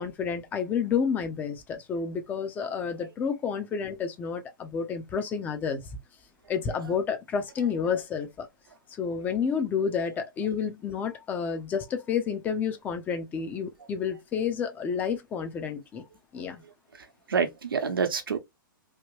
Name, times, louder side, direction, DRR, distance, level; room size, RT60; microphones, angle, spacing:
voice 1, 0.0-5.8 6.5-8.5 9.0-16.0 16.3-16.6, left 6 dB, 15° left, 0.5 m, -30 dB
voice 2, 6.5-7.0 7.6-8.0 16.9-18.4, right 5 dB, 90° right, 0.8 m, -30 dB
3.0 x 2.2 x 3.1 m
hypercardioid pair, 140°, 11 cm